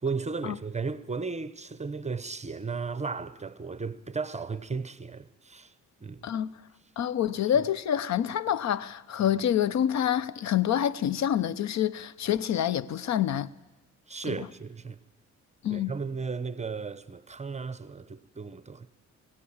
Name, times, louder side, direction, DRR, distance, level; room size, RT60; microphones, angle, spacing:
voice 1, 0.0-5.7 6.0-6.3 14.1-15.0 15.7-18.9, right 4 dB, 20° right, 0.9 m, -35 dB
voice 2, 7.0-13.5 14.3-14.4 15.6-15.9, left 10 dB, 65° left, 0.8 m, -27 dB
21.0 x 16.5 x 8.8 m
cardioid pair, 90°, 30 cm